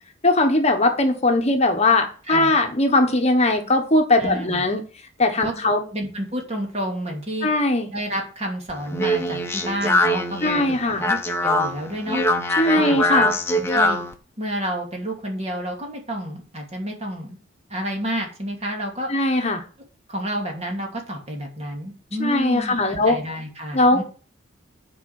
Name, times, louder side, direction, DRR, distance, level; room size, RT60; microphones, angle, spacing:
voice 1, 0.2-4.8 5.2-5.8 7.4-7.9 10.4-11.0 12.6-13.3 19.1-19.6 22.2-23.2 23.7-24.0, left 2 dB, 35° left, 5 dB, 1.2 m, -19 dB
voice 2, 2.3-2.6 4.2-4.6 5.4-5.5 5.9-7.5 7.9-12.2 12.7-13.2 13.5-14.0 14.4-17.4 17.7-19.1 20.1-24.0, equal, 35° right, 1 dB, 2.7 m, -30 dB
Speech, 8.7-14.1, left 1 dB, 15° left, 1.2 m, -23 dB
10.5 x 5.0 x 6.5 m, 0.38 s
head